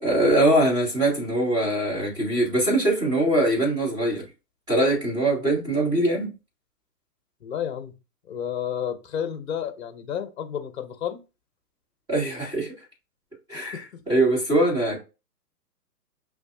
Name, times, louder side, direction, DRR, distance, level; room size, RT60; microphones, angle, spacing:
voice 1, 0.0-4.2 4.7-6.3 12.1-12.7 13.5-15.0, right 1 dB, 10° right, 2.0 m, -22 dB
voice 2, 7.4-7.9 8.3-11.2 13.7-14.0, left 9 dB, 45° left, 0.9 m, -31 dB
6.1 x 2.8 x 2.7 m
hypercardioid pair, 160°, 47 cm